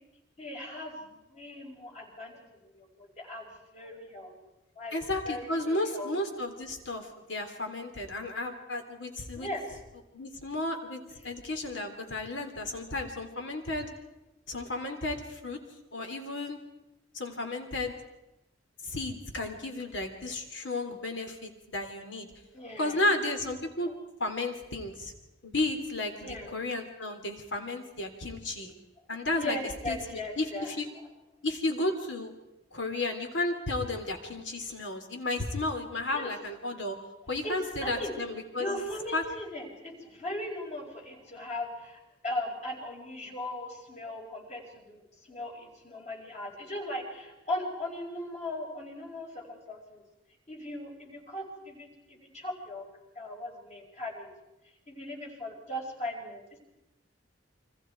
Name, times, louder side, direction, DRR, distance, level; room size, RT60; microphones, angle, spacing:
voice 1, 0.4-3.5 3.7-4.4 4.8-4.9 5.3-6.1 9.3-9.6 22.5-23.0 23.8-23.9 26.2-26.5 29.4-30.7 36.1-36.3 37.4-38.1 38.6-45.0 45.3-50.0 50.5-52.9 53.2-54.3 54.9-56.6, left 1 dB, 40° left, 0 dB, 5.5 m, -38 dB
voice 2, 4.9-9.5 10.1-13.9 14.5-15.6 15.9-16.6 17.1-17.9 18.8-22.3 22.8-23.9 24.2-25.1 25.4-28.7 29.1-29.6 29.9-30.9 31.4-32.3 32.7-37.0 37.3-38.8 39.1-39.2, left 2 dB, 75° left, 5 dB, 3.5 m, -33 dB
30.0 x 24.5 x 4.7 m, 0.96 s
head